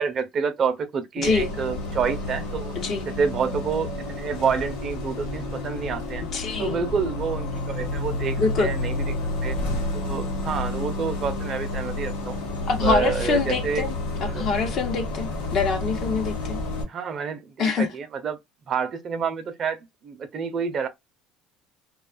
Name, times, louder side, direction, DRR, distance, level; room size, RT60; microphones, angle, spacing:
voice 1, 0.0-2.7 3.1-6.2 6.6-9.0 9.4-9.6 9.9-12.4 12.8-13.8 14.2-14.4 16.9-18.4 18.7-20.9, right 6 dB, 45° right, 0.6 m, -28 dB
Bus, 1.2-16.8, left 2 dB, 90° left, 1.0 m, -30 dB
voice 2, 1.2-1.5 2.8-3.1 6.3-6.9 8.4-8.8 12.7-13.9 14.2-16.6 17.6-17.9, left 4 dB, 55° left, 0.8 m, -25 dB
2.4 x 2.4 x 2.2 m
supercardioid pair, 85°, 0 cm